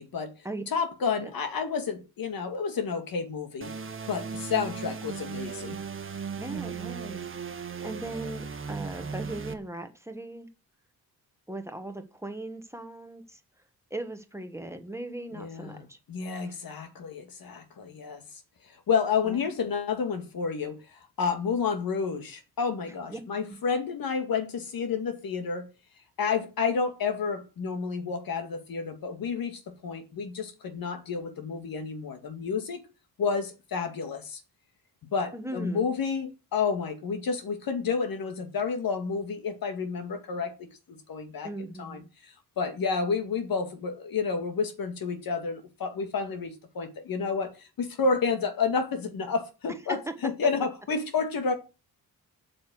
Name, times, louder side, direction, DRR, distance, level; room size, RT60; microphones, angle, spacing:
voice 1, 0.0-0.3 0.7-3.7 4.1-5.8 15.3-15.8 16.1-18.2 18.9-25.7 26.2-32.9 33.2-34.4 35.1-41.5 41.8-51.5, left 5 dB, 70° left, 2.1 m, -30 dB
sound 1, 3.6-9.5, right 5 dB, 35° right, 1.3 m, -37 dB
voice 2, 6.4-7.2 7.6-10.5 11.5-13.4 13.9-16.0 16.3-16.5 19.2-19.5 23.1-23.2 23.5-23.6 35.3-35.9 41.4-42.0 49.9-50.0, right 2 dB, 10° right, 1.3 m, -38 dB
8.4 x 6.6 x 7.7 m
wide cardioid pair, 140°, 36 cm